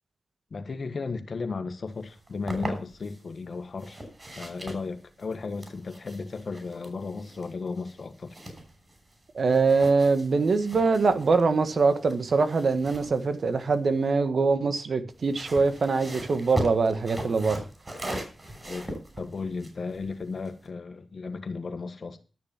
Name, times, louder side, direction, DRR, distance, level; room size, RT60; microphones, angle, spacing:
voice 1, 0.5-4.0 4.3-8.3 18.5-22.2, left 4 dB, 65° left, 1.6 m, -35 dB
sound 1, 2.1-3.2 3.8-9.2 9.4-14.1 15.1-20.7, right 1 dB, 35° right, 6.2 m, -40 dB
voice 2, 9.3-17.6, right 4 dB, 70° right, 1.5 m, -23 dB
12.5 x 6.8 x 7.3 m
cardioid pair, 40°, 0 cm